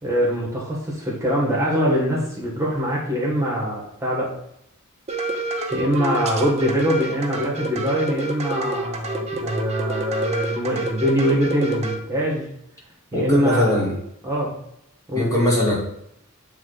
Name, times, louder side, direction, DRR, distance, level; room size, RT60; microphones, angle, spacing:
voice 1, 0.0-4.3 5.7-12.5 13.1-13.8 14.2-14.5 15.1-15.3, equal, 15° right, -4 dB, 1.6 m, -23 dB
sound 1, 5.1-12.0, right 2 dB, 30° right, 0.7 m, -28 dB
voice 2, 13.1-13.9 15.1-15.7, left 1 dB, 15° left, -5 dB, 2.2 m, -20 dB
7.4 x 3.5 x 4.0 m, 0.76 s
head